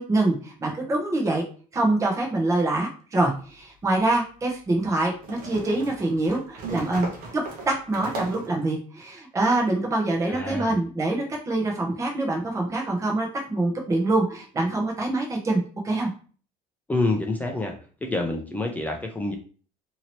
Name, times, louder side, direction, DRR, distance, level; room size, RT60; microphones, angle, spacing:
voice 1, 0.0-1.4 1.7-7.1 7.7-16.1, right 2 dB, 20° right, -1 dB, 0.8 m, -25 dB
sound 1, 3.3-3.4 5.2-8.6, right 3 dB, 65° right, 0.9 m, -37 dB
voice 2, 10.3-10.8 16.9-17.7 18.0-19.3, left 2 dB, 10° left, 1 dB, 0.5 m, -27 dB
2.8 x 2.8 x 2.9 m, 0.40 s
cardioid pair, 125°, 16 cm